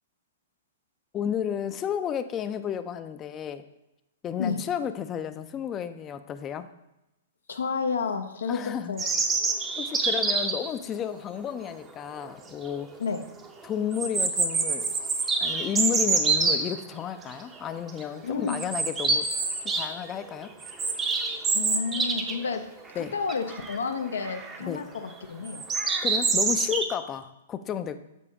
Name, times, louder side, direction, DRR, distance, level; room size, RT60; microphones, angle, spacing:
voice 1, 1.1-3.6 4.2-6.7 8.5-8.9 9.8-12.9 13.6-15.0 15.4-19.3 19.7-20.5 23.0-23.1 24.6-24.9 26.0-28.0, left 8 dB, 25° left, 10 dB, 0.4 m, -32 dB
voice 2, 7.5-9.1 13.0-13.2 18.2-18.6 21.5-22.6 22.9-25.6, left 5 dB, 85° left, 5 dB, 0.5 m, -30 dB
sound 1, 9.0-10.7 12.2-12.3 12.7-12.8 13.9-16.6 17.3-17.6 17.9-18.0 18.5-19.9 20.2-22.5 22.8-22.9 23.3-23.8 24.2-24.6 25.5-26.8, right 4 dB, 20° right, 0.6 m, -26 dB
6.9 x 4.1 x 3.6 m, 0.91 s
hypercardioid pair, 125°, 0 cm